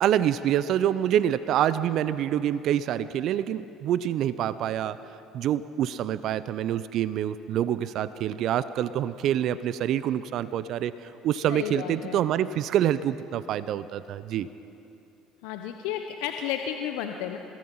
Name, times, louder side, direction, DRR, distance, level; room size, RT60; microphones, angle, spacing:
voice 1, 0.0-5.0 5.3-14.5, right 10 dB, 60° right, 15 dB, 0.6 m, -26 dB
voice 2, 11.5-12.2 15.4-17.4, left 9 dB, 70° left, 5 dB, 1.0 m, -32 dB
30.0 x 17.5 x 5.6 m, 2.8 s
hypercardioid pair, 60°, 0 cm